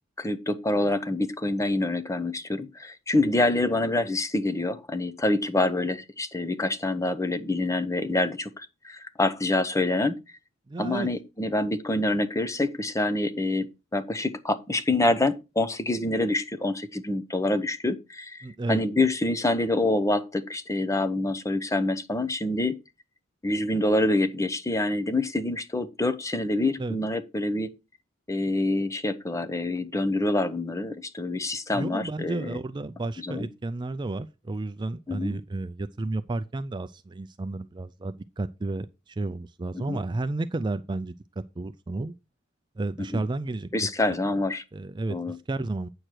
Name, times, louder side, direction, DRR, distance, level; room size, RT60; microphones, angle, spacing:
voice 1, 0.2-10.2 10.8-13.7 13.9-22.7 23.4-27.7 28.3-32.6 33.2-33.5 35.1-35.4 39.7-40.0 43.0-43.2 43.7-44.6 45.1-45.4, left 2 dB, 15° left, 0.7 m, -26 dB
voice 2, 10.7-11.1 18.4-18.8 26.8-27.0 31.7-41.2 41.6-42.1 42.8-43.7 44.7-45.9, right 2 dB, 25° right, 0.4 m, -32 dB
8.8 x 6.5 x 4.5 m
head